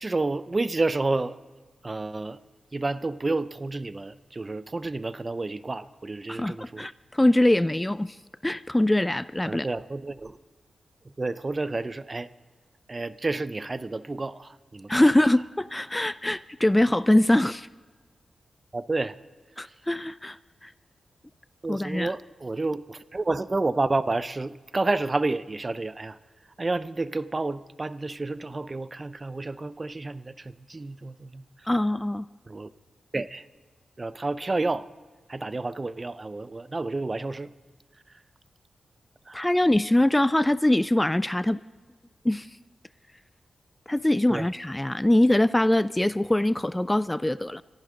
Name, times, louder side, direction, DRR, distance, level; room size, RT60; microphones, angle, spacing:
voice 1, 0.0-1.4 1.8-2.4 2.7-6.9 9.4-10.4 11.2-12.3 12.9-15.0 18.7-19.1 21.6-26.2 26.6-31.4 32.5-32.7 33.1-33.4 34.0-34.9 35.3-37.5 39.3-39.5 44.3-44.4, right 2 dB, 35° right, 15 dB, 0.6 m, -30 dB
voice 2, 6.3-8.2 8.4-9.7 14.9-17.7 19.6-20.7 21.7-22.2 31.7-32.2 39.3-41.6 42.2-42.5 43.9-47.6, left 1 dB, 15° left, 17 dB, 0.4 m, -23 dB
23.5 x 14.5 x 3.8 m, 1.3 s
cardioid pair, 60°, 0 cm